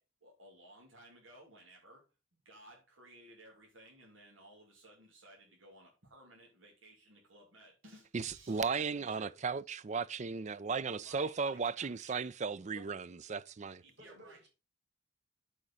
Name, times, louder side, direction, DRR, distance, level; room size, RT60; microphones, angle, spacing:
voice 1, 0.0-2.1 2.4-9.3 10.2-10.3 10.9-12.4 13.8-14.4, right 1 dB, 80° right, 2.7 m, -58 dB
voice 2, 8.1-13.8, right 5 dB, 35° right, 0.4 m, -36 dB
voice 3, 8.9-9.3 12.7-12.9 14.0-14.5, left 1 dB, 60° right, 4.0 m, -55 dB
9.1 x 5.1 x 5.4 m
head